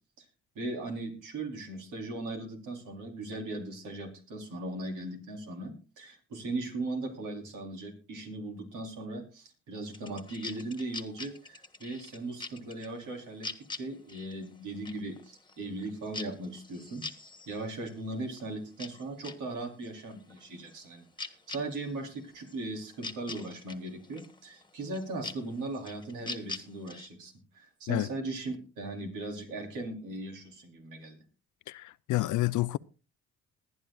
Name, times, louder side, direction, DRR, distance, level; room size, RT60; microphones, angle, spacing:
voice 1, 0.6-31.2, right 2 dB, 85° right, 4.0 m, -38 dB
sound 1, 9.9-19.4 19.8-27.1, left 3 dB, 15° left, 1.4 m, -44 dB
voice 2, 31.7-32.8, left 18 dB, 80° left, 0.5 m, -29 dB
21.0 x 11.0 x 2.4 m
cardioid pair, 90°, 30 cm